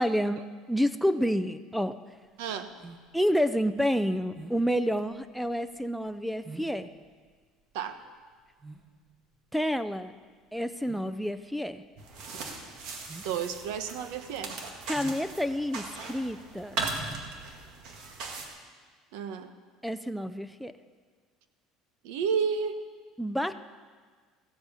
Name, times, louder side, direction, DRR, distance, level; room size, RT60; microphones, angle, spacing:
voice 1, 0.0-2.0 3.1-6.9 9.5-10.1 10.5-11.8 14.9-16.9 19.8-20.7 23.2-23.5, equal, ahead, 12 dB, 0.4 m, -29 dB
sound 1, 2.2-18.5, right 3 dB, 25° right, 1.6 m, -51 dB
voice 2, 2.4-2.7 7.7-8.0 13.2-14.6 19.1-19.5 22.0-22.8, right 6 dB, 85° right, 10 dB, 1.0 m, -31 dB
sound 2, 12.0-18.5, right 3 dB, 65° right, 1.8 m, -38 dB
15.0 x 7.9 x 7.2 m, 1.5 s
cardioid pair, 135°, 0 cm